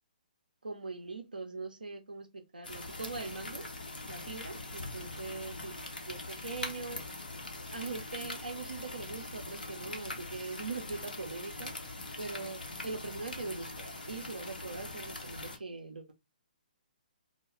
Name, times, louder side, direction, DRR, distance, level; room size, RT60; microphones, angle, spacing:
voice 1, 0.6-3.7 4.1-5.8 6.1-7.0 7.7-11.7 12.2-16.0, right 3 dB, 80° right, 0.5 m, -41 dB
sound 1, 2.6-15.6, left 2 dB, 80° left, 0.7 m, -42 dB
2.2 x 2.1 x 3.0 m
figure-of-eight pair, 130°, 5 cm